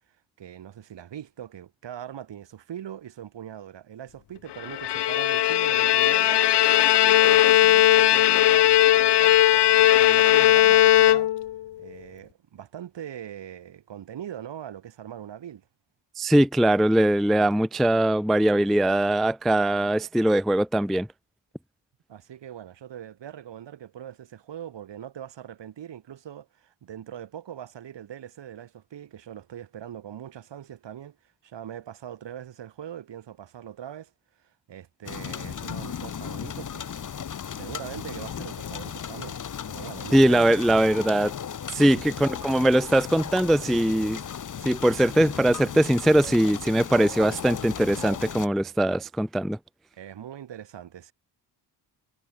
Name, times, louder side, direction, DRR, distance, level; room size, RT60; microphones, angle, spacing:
voice 1, 0.4-6.4 7.0-11.3 11.8-15.6 22.1-31.2 31.4-34.1 34.4-37.0 37.6-39.4 39.7-40.6 41.8-42.0 49.9-51.1, right 10 dB, 75° right, 5.9 m, -41 dB
Bowed string instrument, 4.6-11.6, left 13 dB, 65° left, 0.9 m, -18 dB
voice 2, 16.2-21.1 40.1-41.3 41.7-44.2 44.6-49.6, right 1 dB, ahead, 0.3 m, -21 dB
sound 1, 35.0-48.5, left 8 dB, 45° left, 1.2 m, -36 dB
cardioid pair, 65°, 44 cm